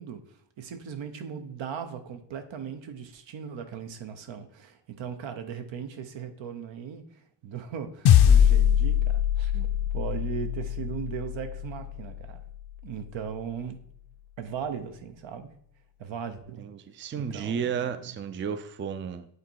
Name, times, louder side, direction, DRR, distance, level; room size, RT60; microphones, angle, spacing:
voice 1, 0.0-12.4 12.8-13.8 14.4-15.5 16.0-16.6 17.2-18.0, right 7 dB, 80° right, 8 dB, 1.1 m, -38 dB
sound 1, 8.1-12.6, left 9 dB, 60° left, 0.6 m, -23 dB
voice 2, 16.6-19.3, right 7 dB, 30° right, 11 dB, 0.4 m, -33 dB
8.3 x 4.1 x 4.6 m, 0.67 s
wide cardioid pair, 145°, 45 cm